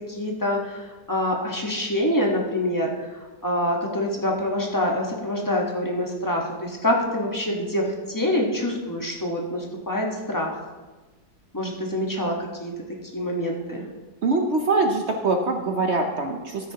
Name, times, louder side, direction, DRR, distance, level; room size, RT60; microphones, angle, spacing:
voice 1, 0.1-3.1 3.4-10.6 11.5-12.7 13.1-13.8, left 1 dB, 15° left, -1 dB, 1.0 m, -26 dB
voice 2, 14.2-16.7, right 3 dB, 60° right, 4 dB, 0.7 m, -23 dB
13.0 x 9.6 x 2.9 m, 1.2 s
omnidirectional pair, 1.9 m